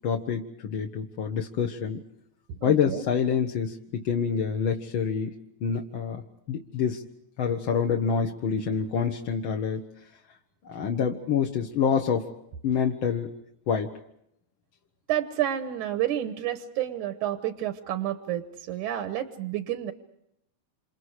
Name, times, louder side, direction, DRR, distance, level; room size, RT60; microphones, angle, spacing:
voice 1, 0.0-2.0 2.6-5.3 5.6-6.2 6.5-7.0 7.4-9.8 10.7-12.3 12.6-13.3 13.7-13.9, left 7 dB, 55° left, 2 dB, 1.6 m, -27 dB
voice 2, 2.5-3.0 15.1-19.9, right 12 dB, 90° right, 8 dB, 2.7 m, -30 dB
28.5 x 28.0 x 4.9 m, 0.78 s
omnidirectional pair, 3.4 m